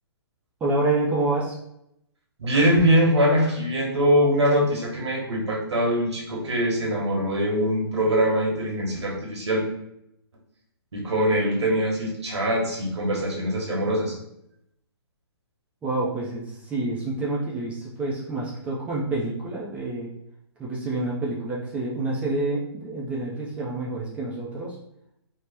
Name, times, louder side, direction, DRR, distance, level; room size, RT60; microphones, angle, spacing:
voice 1, 0.6-1.5 15.8-20.1 20.6-24.8, right 2 dB, 10° right, -6 dB, 0.4 m, -28 dB
voice 2, 2.4-9.6 10.9-14.2, equal, 85° right, -2 dB, 1.1 m, -23 dB
2.8 x 2.0 x 3.3 m, 0.79 s
hypercardioid pair, 145°, 14 cm